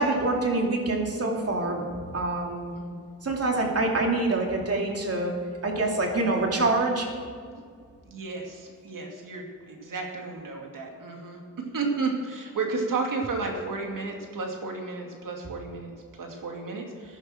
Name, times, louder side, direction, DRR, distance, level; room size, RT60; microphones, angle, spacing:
voice 1, 0.0-1.9 2.1-2.7 3.2-5.3 5.6-7.1, right 2 dB, 45° right, 0 dB, 2.7 m, -25 dB
voice 2, 8.0-17.2, right 3 dB, 75° right, 1 dB, 2.6 m, -33 dB
15.5 x 11.0 x 4.4 m, 2.1 s
cardioid pair, 90°, 33 cm